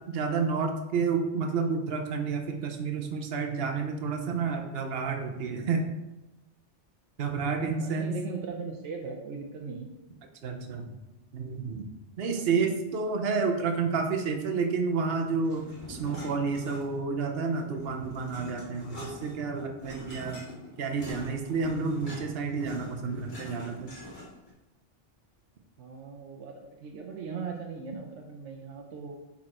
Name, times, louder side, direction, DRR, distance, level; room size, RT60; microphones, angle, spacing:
voice 1, 0.1-5.9 7.2-8.2 10.4-10.9 11.3-11.8 12.2-20.4 20.8-23.9, right 5 dB, 60° right, 4 dB, 1.0 m, -30 dB
voice 2, 7.7-9.9 12.4-12.5 25.8-29.2, right 5 dB, 80° right, 1 dB, 1.0 m, -39 dB
sound 1, 15.4-17.1 17.5-24.5, left 1 dB, 40° left, 2.3 m, -44 dB
6.4 x 4.4 x 4.3 m, 0.99 s
omnidirectional pair, 1.2 m